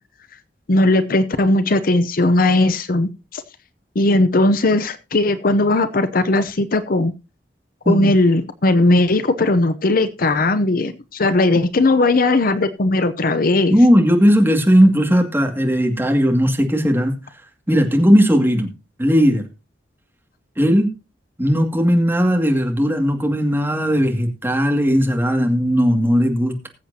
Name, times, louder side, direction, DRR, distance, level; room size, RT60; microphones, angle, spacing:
voice 1, 0.7-3.4 4.0-7.1 7.9-13.8, left 2 dB, 55° left, 12 dB, 0.7 m, -17 dB
voice 2, 13.7-17.2 17.7-18.7 19.0-19.4 20.6-20.9 21.4-26.6, equal, 10° right, 3 dB, 2.2 m, -16 dB
20.5 x 7.8 x 2.8 m, 0.28 s
head